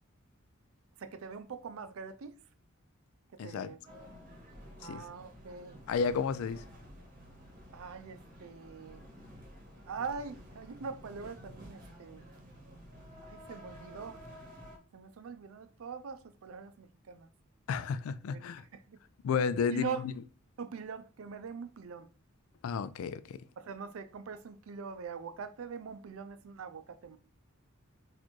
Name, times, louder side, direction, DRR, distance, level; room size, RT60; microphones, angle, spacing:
voice 1, 1.0-2.3 3.4-3.8 4.8-5.8 7.7-9.0 9.9-12.2 13.2-14.2 14.9-17.3 18.3-19.0 19.7-20.0 20.6-22.1 23.6-27.2, right 6 dB, 80° right, 0.4 m, -43 dB
voice 2, 3.4-3.7 4.8-5.0 5.9-6.6 17.7-18.6 19.2-20.1 22.6-23.4, left 6 dB, 85° left, 0.3 m, -32 dB
sound 1, 3.8-14.8, equal, 40° right, 0.9 m, -52 dB
4.2 x 2.5 x 3.0 m
head